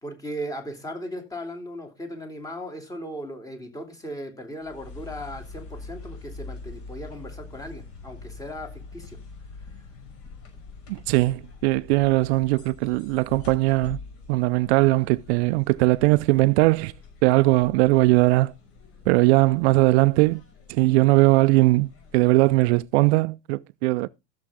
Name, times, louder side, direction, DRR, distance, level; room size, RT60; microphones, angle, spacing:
voice 1, 0.0-9.2, equal, 10° left, 3.1 m, -37 dB
sound 1, 4.6-23.0, left 3 dB, 45° left, 5.9 m, -44 dB
voice 2, 10.9-14.0 14.3-16.9 17.2-18.5 19.1-20.4 20.7-24.1, right 21 dB, 70° right, 0.5 m, -20 dB
14.0 x 7.2 x 3.7 m
supercardioid pair, 115°, 34 cm